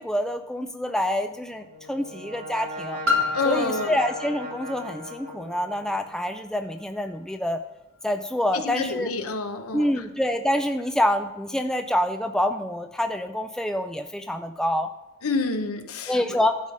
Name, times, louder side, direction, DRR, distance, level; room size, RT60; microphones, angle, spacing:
voice 1, 0.0-3.0 3.4-7.6 8.0-9.1 9.7-14.9 16.1-16.6, left 1 dB, 5° left, 6 dB, 0.3 m, -26 dB
Brass instrument, 1.4-6.2, equal, 25° right, 2.5 m, -38 dB
Piano, 3.1-8.5 9.2-9.3, left 4 dB, 75° right, 1.6 m, -32 dB
voice 2, 3.3-4.0 8.5-10.0 15.2-16.2, left 3 dB, 75° left, 8 dB, 0.9 m, -28 dB
12.0 x 5.0 x 5.4 m, 1.0 s
head